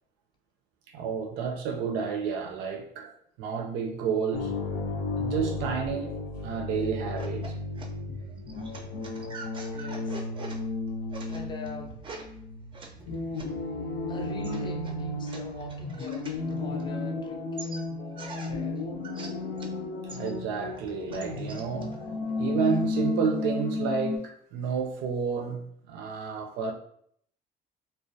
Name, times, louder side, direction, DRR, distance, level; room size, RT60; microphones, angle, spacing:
voice 1, 0.9-3.1 3.4-4.5 5.2-6.2 6.4-7.5 20.1-22.0 22.4-26.7, right 6 dB, 90° right, 0.5 m, -30 dB
sound 1, 4.3-24.2, left 3 dB, 80° left, 0.5 m, -33 dB
sound 2, 7.0-17.2 17.6-19.8 20.1-23.1, right 3 dB, 30° right, 0.4 m, -46 dB
voice 2, 9.7-10.3 11.3-12.0 14.1-18.9, left 3 dB, 25° left, 0.4 m, -42 dB
2.2 x 2.2 x 2.6 m
cardioid pair, 110°, 17 cm